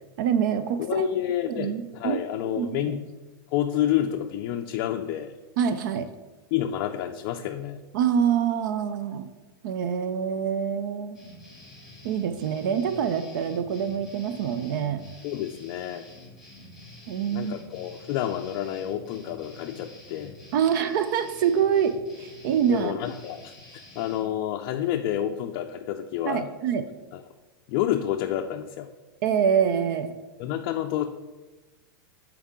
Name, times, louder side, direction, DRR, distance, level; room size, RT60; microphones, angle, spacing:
voice 1, 0.2-1.1 1.5-2.2 2.4-3.0 5.6-6.1 7.9-9.3 9.6-11.2 12.0-15.0 17.1-17.5 20.5-22.9 26.2-26.8 29.2-30.1, right 8 dB, 60° right, 11 dB, 0.5 m, -25 dB
voice 2, 0.8-3.0 3.5-5.3 6.5-7.8 15.2-16.0 17.3-20.3 22.7-26.5 27.1-27.2 27.7-28.9 30.4-31.1, left 11 dB, 40° left, 3 dB, 0.4 m, -29 dB
sound 1, 11.1-24.3, left 1 dB, 5° right, 1.9 m, -48 dB
8.6 x 4.5 x 3.6 m, 1.2 s
supercardioid pair, 155°, 12 cm